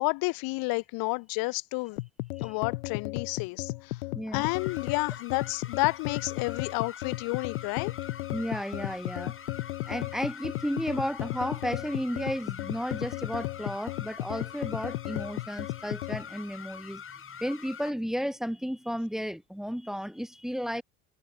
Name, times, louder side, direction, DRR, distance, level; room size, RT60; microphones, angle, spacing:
voice 1, 0.0-2.0 2.4-4.0 4.3-7.9, left 26 dB, 55° left, 1.1 m, -30 dB
sound 1, 2.0-16.3, left 19 dB, 70° left, 2.8 m, -35 dB
sound 2, 4.4-17.9, left 8 dB, 30° left, 2.9 m, -45 dB
voice 2, 8.3-9.3 9.9-17.0 17.4-20.8, equal, ahead, 1.3 m, -33 dB
hypercardioid pair, 80°, 43 cm